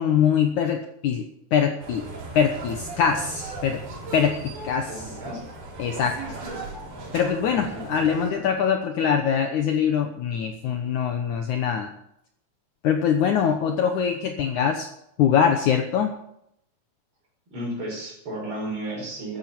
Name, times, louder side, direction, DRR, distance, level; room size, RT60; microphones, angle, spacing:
voice 1, 0.0-2.1 2.3-3.8 4.1-5.0 5.8-6.4 7.1-11.9 12.8-14.9 15.2-16.1, left 7 dB, 70° left, 5 dB, 2.1 m, -23 dB
sound 1, 1.8-8.3, right 2 dB, 85° right, 5.7 m, -37 dB
voice 2, 4.9-5.5 7.5-8.1 17.5-19.4, right 1 dB, 30° right, -1 dB, 5.9 m, -33 dB
14.0 x 10.5 x 7.1 m, 0.75 s
omnidirectional pair, 4.4 m